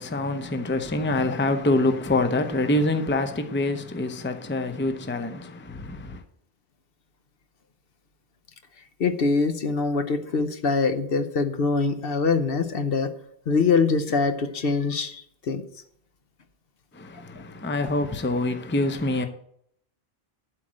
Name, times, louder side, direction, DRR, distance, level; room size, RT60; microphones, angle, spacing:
voice 1, 0.0-6.2 16.9-19.3, left 2 dB, 15° left, 0.6 m, -26 dB
voice 2, 9.0-13.1 13.5-15.6, left 4 dB, 65° left, 1.0 m, -24 dB
11.5 x 4.6 x 7.5 m
omnidirectional pair, 1.1 m